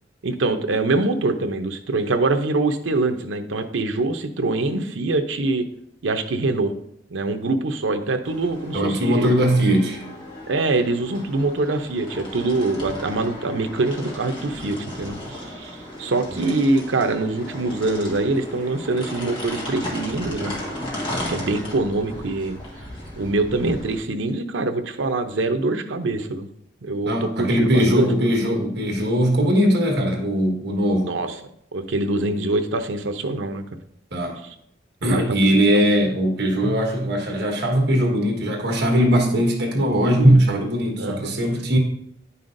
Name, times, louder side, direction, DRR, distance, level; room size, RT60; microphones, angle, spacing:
voice 1, 0.2-5.7 6.0-6.8 7.1-9.3 10.5-20.6 21.3-22.6 23.2-26.5 26.8-28.3 31.1-31.3 31.7-33.6 34.4-34.5 35.0-35.6 41.0-41.4, right 2 dB, 85° right, 7 dB, 0.7 m, -24 dB
sound 1, 8.2-24.0, left 1 dB, 25° left, 1.6 m, -35 dB
voice 2, 8.7-10.1 16.3-16.4 27.0-31.2 34.1-34.4 35.0-41.8, equal, 65° right, 1 dB, 1.4 m, -20 dB
9.6 x 5.6 x 2.6 m, 0.74 s
head